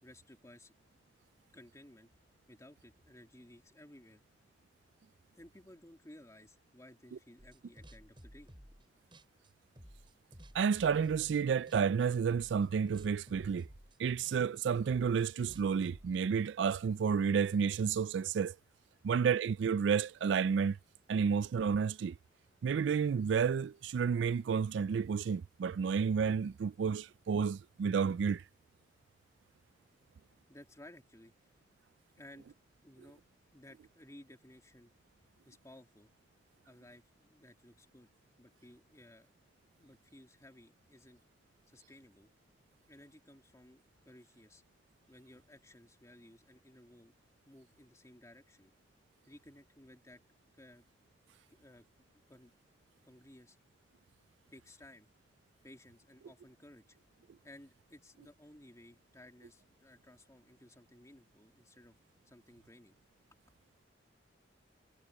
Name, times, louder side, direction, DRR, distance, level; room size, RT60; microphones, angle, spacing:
voice 1, 0.0-0.7 1.5-2.1 2.5-4.2 5.3-8.5 30.5-31.3 32.2-32.5 32.8-33.2 33.5-34.9 35.4-36.1 36.7-38.1 38.4-39.3 39.8-41.2 41.7-42.3 42.9-44.6 45.1-47.1 47.5-48.7 49.3-50.2 50.6-50.8 51.5-51.8 52.1-52.5 53.0-53.6 54.5-55.1 55.6-57.0 57.4-62.9 63.3-63.4, left 1 dB, 15° left, 2.7 m, -57 dB
sound 1, 7.4-8.9 9.1-11.4 11.7-12.0 12.3-16.2, equal, 25° right, 7.5 m, -55 dB
voice 2, 10.5-13.7 14.0-18.6 19.0-20.8 21.1-22.2 22.6-28.4, right 6 dB, 75° right, 0.3 m, -31 dB
head